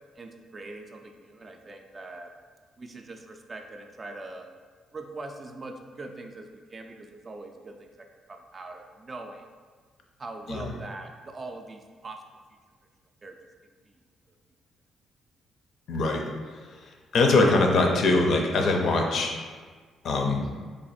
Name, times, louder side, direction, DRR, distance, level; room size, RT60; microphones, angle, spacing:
voice 1, 0.2-2.3 2.8-4.5 4.9-9.5 10.2-12.2 13.2-13.4, right 2 dB, 35° right, 4 dB, 0.4 m, -42 dB
voice 2, 15.9-16.2 16.7-19.3 20.0-20.5, left 2 dB, 65° left, 2 dB, 0.5 m, -23 dB
3.3 x 2.4 x 4.1 m, 1.5 s
cardioid pair, 95°, 0 cm